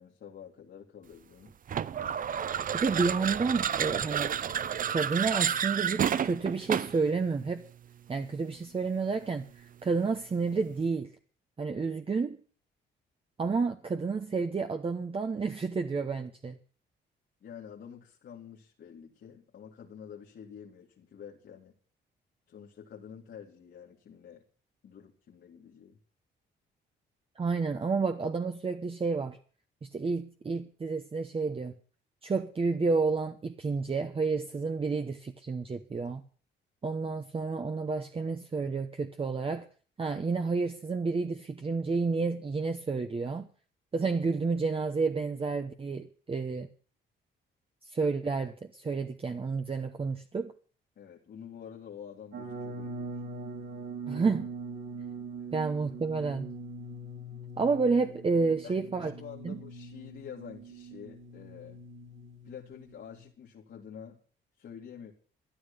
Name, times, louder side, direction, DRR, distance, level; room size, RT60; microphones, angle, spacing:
voice 1, 0.0-1.5 17.4-21.7 22.5-24.4 24.8-26.0 51.0-53.2 58.6-61.8 62.4-64.2 64.6-65.1, left 8 dB, 60° left, 2.5 m, -48 dB
sound 1, 1.7-7.1, right 8 dB, 45° right, 0.6 m, -30 dB
voice 2, 2.7-4.3 4.9-7.6 8.1-11.1 11.6-12.4 13.4-16.6 27.4-29.4 29.8-31.7 32.2-36.2 36.8-39.7 40.0-43.5 43.9-46.7 47.9-50.5 54.1-54.5 55.5-56.5 57.6-59.1 59.4-59.5, right 4 dB, 30° right, 1.0 m, -30 dB
sound 2, 52.3-63.3, right 2 dB, 80° right, 5.1 m, -42 dB
13.0 x 10.5 x 6.9 m
cardioid pair, 90°, 20 cm